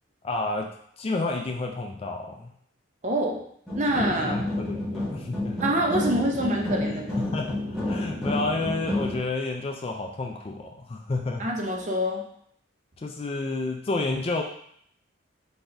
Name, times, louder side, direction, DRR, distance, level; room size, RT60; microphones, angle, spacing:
voice 1, 0.2-2.5 4.2-5.6 6.8-7.6 7.9-11.5 13.0-14.4, left 2 dB, 30° left, 2 dB, 0.3 m, -30 dB
voice 2, 3.0-3.4 3.7-4.4 5.6-7.3 11.4-12.2, right 1 dB, 35° right, 0 dB, 0.7 m, -26 dB
sound 1, 3.7-9.2, left 1 dB, ahead, 1.4 m, -30 dB
4.4 x 4.0 x 2.6 m, 0.66 s
head